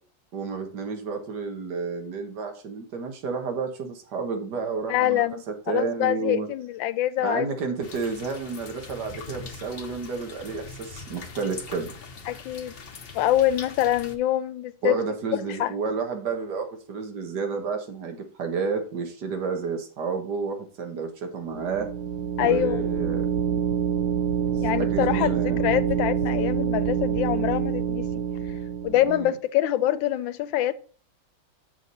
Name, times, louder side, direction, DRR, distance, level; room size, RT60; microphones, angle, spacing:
voice 1, 0.3-5.2 5.7-6.5 7.2-12.0 14.8-21.9 22.4-23.3 24.8-25.6 29.1-29.3, right 5 dB, 60° right, 2.0 m, -31 dB
voice 2, 4.9-7.5 12.3-12.8 13.1-15.0 15.3-15.7 22.4-22.9 24.6-28.1 28.8-30.7, left 12 dB, 85° left, 1.4 m, -25 dB
sound 1, 7.8-14.2, left 4 dB, 45° left, 0.8 m, -42 dB
sound 2, 21.5-29.2, right 9 dB, 85° right, 1.4 m, -26 dB
7.3 x 6.4 x 4.1 m
omnidirectional pair, 2.1 m